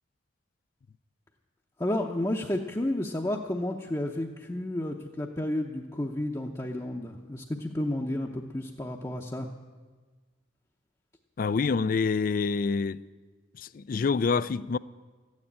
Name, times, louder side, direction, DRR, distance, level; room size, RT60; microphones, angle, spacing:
voice 1, 1.8-9.5, left 1 dB, 15° left, 0.7 m, -31 dB
voice 2, 11.4-13.0 13.6-14.8, left 5 dB, 45° left, 0.3 m, -27 dB
14.0 x 9.6 x 8.7 m
head